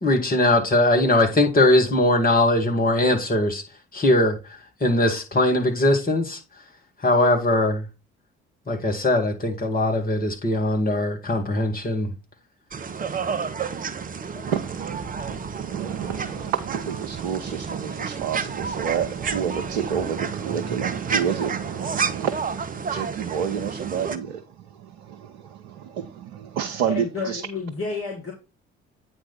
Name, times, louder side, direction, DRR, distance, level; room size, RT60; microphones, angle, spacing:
voice 1, 0.0-3.6 3.9-4.4 4.8-6.4 7.0-7.8 8.7-12.1, left 1 dB, 25° left, 2.1 m, -20 dB
sound 1, 12.7-24.2, right 5 dB, 25° right, 0.8 m, -31 dB
voice 2, 14.5-15.0 15.3-27.4, right 8 dB, 70° right, 0.8 m, -29 dB
voice 3, 26.8-28.3, left 4 dB, 40° left, 2.4 m, -31 dB
8.7 x 4.4 x 4.1 m
figure-of-eight pair, 50°, 33 cm